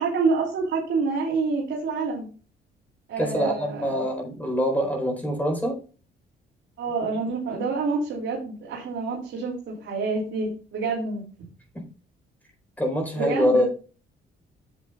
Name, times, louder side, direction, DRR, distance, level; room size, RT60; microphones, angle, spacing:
voice 1, 0.0-2.3 3.1-4.0 6.8-11.2 13.1-13.6, right 4 dB, 70° right, -3 dB, 2.9 m, -27 dB
voice 2, 3.2-5.8 11.7-11.9 12.8-13.7, equal, 10° left, 0 dB, 4.5 m, -24 dB
11.0 x 7.7 x 2.4 m, 0.37 s
cardioid pair, 90°, 20 cm